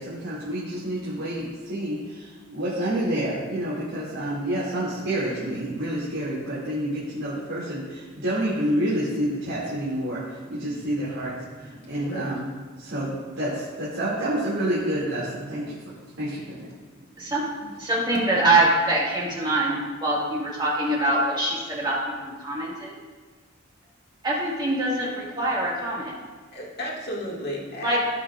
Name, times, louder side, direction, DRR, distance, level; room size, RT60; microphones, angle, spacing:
voice 1, 0.0-12.4 12.8-15.8 16.2-16.6, right 1 dB, 75° right, -9 dB, 2.4 m, -28 dB
voice 2, 17.2-17.5 17.8-22.9 24.2-26.2 27.8-28.0, right 2 dB, 25° right, -5 dB, 1.9 m, -24 dB
voice 3, 26.5-28.0, equal, 55° left, -4 dB, 2.0 m, -33 dB
15.5 x 5.7 x 2.5 m, 1.4 s
head